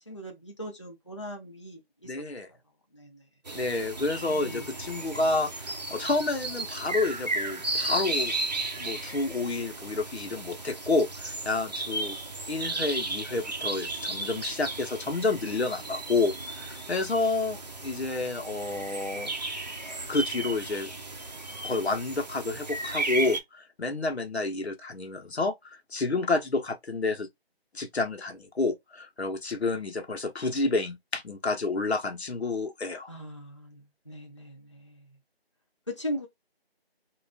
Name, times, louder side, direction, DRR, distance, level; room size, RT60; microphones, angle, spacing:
voice 1, 0.1-2.2 2.9-3.2 4.2-4.7 33.1-35.0 35.9-36.3, equal, 30° left, 0.5 m, -39 dB
voice 2, 2.0-2.5 3.5-8.3 8.8-12.2 12.5-19.3 20.1-20.9 21.6-27.3 27.7-33.1, left 3 dB, 90° left, 1.0 m, -29 dB
sound 1, 3.5-23.4, right 2 dB, 45° right, 0.6 m, -35 dB
3.1 x 2.5 x 3.5 m
figure-of-eight pair, 170°, 31 cm